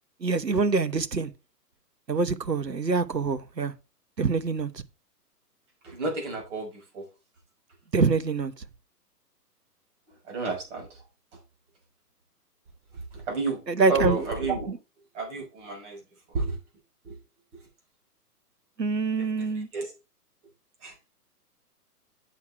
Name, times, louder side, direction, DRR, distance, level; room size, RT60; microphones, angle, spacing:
voice 1, 0.2-1.3 2.1-3.7 4.2-4.8 7.9-8.5 13.7-14.2 14.7-14.8 18.8-19.7, right 4 dB, 90° right, 1.1 m, -25 dB
voice 2, 5.8-7.1 10.3-11.0 13.1-13.6 13.9-14.7 15.1-16.0 16.3-16.6 17.0-17.2 17.5-17.6 19.3-19.9 20.8-20.9, right 4 dB, 45° right, 6.0 m, -31 dB
8.3 x 6.5 x 4.6 m
figure-of-eight pair, 125°, 48 cm